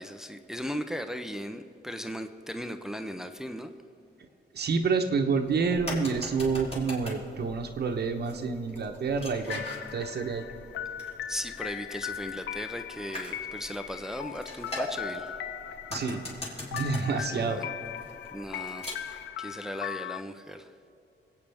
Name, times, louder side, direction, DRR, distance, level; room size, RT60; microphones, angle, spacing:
voice 1, 0.0-3.7 11.3-15.3 17.2-17.7 18.3-20.7, equal, 5° right, 8 dB, 0.6 m, -37 dB
voice 2, 4.5-9.6 9.9-10.4 15.9-16.2 16.7-17.6, right 5 dB, 60° right, 5 dB, 1.0 m, -28 dB
sound 1, 5.4-19.3, left 1 dB, 35° left, 3.7 m, -42 dB
sound 2, 9.5-20.2, left 10 dB, 85° left, 0.4 m, -39 dB
25.0 x 8.8 x 3.5 m, 2.8 s
cardioid pair, 110°, 19 cm